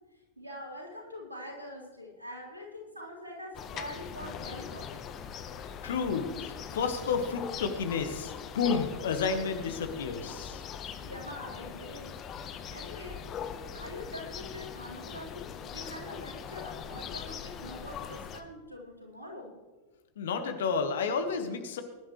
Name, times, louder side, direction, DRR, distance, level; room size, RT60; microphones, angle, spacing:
voice 1, 0.4-5.0 11.0-12.2 12.7-13.2 13.7-19.5, equal, 85° right, -4 dB, 4.1 m, -44 dB
sound 1, 3.5-18.4, left 7 dB, 30° left, 1.0 m, -41 dB
voice 2, 5.8-10.6 20.2-21.8, left 5 dB, 60° left, 7 dB, 1.6 m, -31 dB
21.0 x 11.5 x 3.2 m, 1.3 s
figure-of-eight pair, 90°, 0 cm